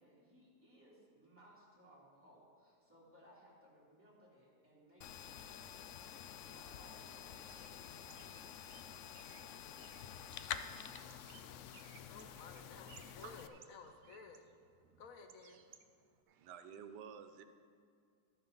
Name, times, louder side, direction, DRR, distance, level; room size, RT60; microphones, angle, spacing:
voice 1, 0.0-11.4, equal, 5° right, -7 dB, 3.0 m, -64 dB
sound 1, 5.0-13.5, left 9 dB, 80° left, 0.6 m, -49 dB
Bird, 7.5-16.2, right 7 dB, 65° right, 0.9 m, -64 dB
voice 2, 12.1-14.5 15.0-15.6, left 4 dB, 60° left, 6 dB, 1.2 m, -55 dB
voice 3, 12.6-13.6 15.7-15.8 16.3-17.4, right 7 dB, 80° right, 9 dB, 1.3 m, -54 dB
13.0 x 11.0 x 4.0 m, 2.3 s
omnidirectional pair, 1.8 m